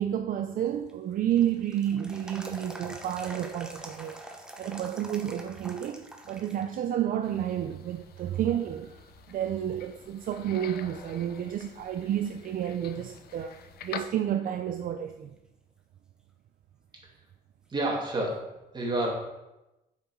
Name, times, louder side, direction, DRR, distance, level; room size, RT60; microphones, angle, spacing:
voice 1, 0.0-4.2 4.6-8.9 9.3-15.3, right 10 dB, 60° right, 0.5 m, -30 dB
sound 1, 0.7-6.8 7.1-7.2 8.0-8.5 9.0-9.1 9.6-10.8 11.1-11.2 14.6-14.7 17.6-17.7, right 1 dB, 5° right, 1.0 m, -45 dB
sound 2, 7.2-14.1, left 7 dB, 75° left, 0.6 m, -46 dB
voice 2, 17.7-19.1, right 1 dB, 25° right, 2.2 m, -29 dB
7.3 x 5.8 x 4.6 m
cardioid pair, 115°, 16 cm